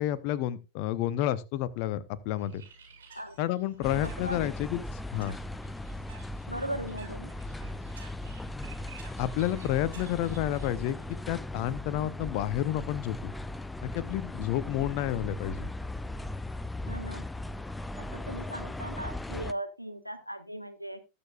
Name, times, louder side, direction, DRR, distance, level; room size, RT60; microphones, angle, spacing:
voice 1, 0.0-2.6 3.4-5.4 9.2-11.0 11.3-13.3 13.8-15.7, left 13 dB, 45° left, 18 dB, 0.8 m, -30 dB
Bird, 2.4-11.2, right 4 dB, 65° right, 4.5 m, -53 dB
sound 1, 3.8-19.5, left 1 dB, 5° left, 0.5 m, -38 dB
voice 2, 4.0-4.4 6.5-7.3 16.9-17.2 18.0-21.0, right 1 dB, 90° left, 10 dB, 1.4 m, -38 dB
19.5 x 7.0 x 2.5 m, 0.28 s
figure-of-eight pair, 90°, 0 cm